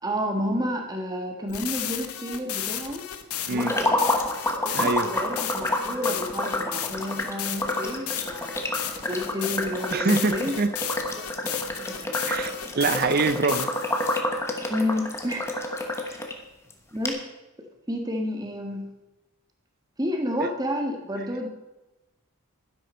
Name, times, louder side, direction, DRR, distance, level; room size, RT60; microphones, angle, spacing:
voice 1, 0.0-3.0 3.5-4.1 4.5-10.6 11.2-11.3 11.8-12.2 14.7-15.6 16.0-16.1 16.9-17.2 17.9-18.9 20.0-21.5, equal, 20° right, 3 dB, 1.6 m, -30 dB
sound 1, 1.5-14.2, left 10 dB, 85° left, 0.9 m, -34 dB
sound 2, 3.6-16.3 16.7-16.8 17.0-17.1, left 1 dB, 10° left, 1.1 m, -29 dB
voice 2, 4.7-5.1 9.9-10.7 12.3-13.7 20.4-20.5, right 3 dB, 45° right, 13 dB, 0.5 m, -25 dB
12.0 x 10.5 x 4.4 m, 1.0 s
head